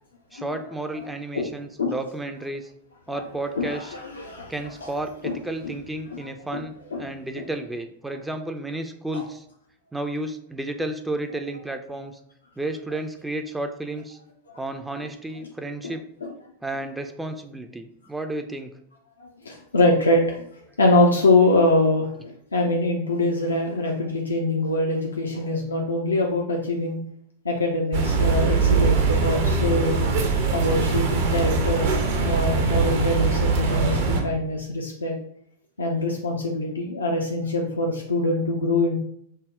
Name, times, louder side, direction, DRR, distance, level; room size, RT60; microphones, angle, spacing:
voice 1, 0.3-2.7 3.1-3.9 4.5-9.4 9.9-12.2 12.6-14.2 14.6-16.0 16.6-18.7, right 1 dB, 5° right, 6 dB, 0.4 m, -32 dB
voice 2, 3.6-4.5 4.8-4.9 5.2-5.3 5.6-5.7 6.5-6.6 6.9-7.4 9.1-9.2 15.8-15.9 16.2-16.3 19.2-20.5 20.8-27.0 27.4-30.1 30.5-35.1 35.8-38.9, left 2 dB, 75° left, 1 dB, 0.5 m, -24 dB
sound 1, 27.9-34.2, right 4 dB, 55° right, 0.8 m, -22 dB
5.4 x 2.1 x 3.6 m, 0.70 s
figure-of-eight pair, 90°, 0 cm